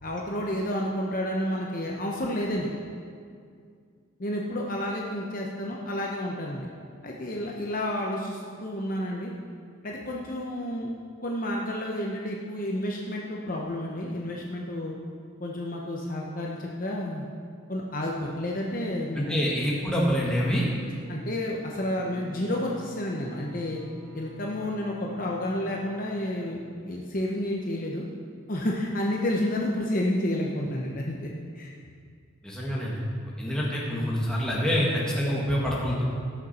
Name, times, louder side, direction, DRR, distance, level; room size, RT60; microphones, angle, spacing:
voice 1, 0.0-2.7 4.2-6.7 7.0-9.3 9.8-10.9 11.2-15.0 15.4-17.3 17.7-19.4 21.1-23.8 24.1-28.0 28.5-31.7, left 1 dB, 40° left, -2 dB, 0.9 m, -30 dB
voice 2, 19.2-20.7 32.4-33.0 33.4-36.0, equal, 5° left, -6 dB, 1.9 m, -26 dB
Bowed string instrument, 21.6-27.0, left 1 dB, 85° right, 2.6 m, -47 dB
18.0 x 6.6 x 4.4 m, 2.2 s
head